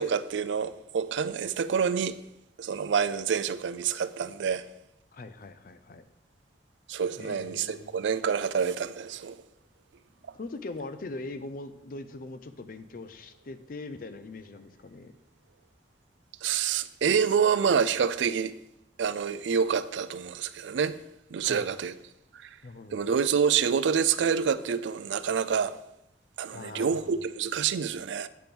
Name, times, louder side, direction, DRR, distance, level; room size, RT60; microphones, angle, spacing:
voice 1, 0.0-2.2 2.6-4.6 6.9-9.4 16.4-18.5 19.0-21.0 21.3-21.9 22.4-22.5 22.9-25.7 26.4-28.3, right 7 dB, 90° right, 0.4 m, -27 dB
voice 2, 5.1-6.1 7.2-8.0 10.3-15.1 21.4-21.8 22.6-23.1 26.5-27.2, left 2 dB, 50° left, 0.5 m, -41 dB
8.4 x 3.4 x 5.9 m
head